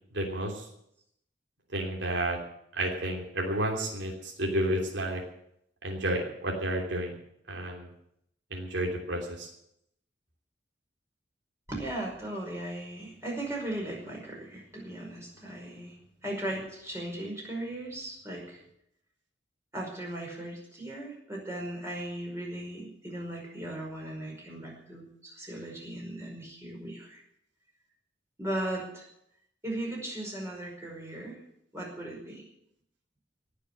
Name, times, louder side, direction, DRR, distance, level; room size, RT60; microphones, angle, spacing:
voice 1, 0.1-0.6 1.7-2.4 2.7-5.2 5.8-7.2 7.5-7.9 8.5-9.5, right 1 dB, 75° right, 0 dB, 3.1 m, -31 dB
voice 2, 11.7-15.9 16.2-18.6 19.7-27.2 28.4-29.1 29.6-31.4 31.7-32.4, right 1 dB, 15° right, -2 dB, 5.2 m, -37 dB
18.5 x 6.9 x 10.0 m, 0.76 s
head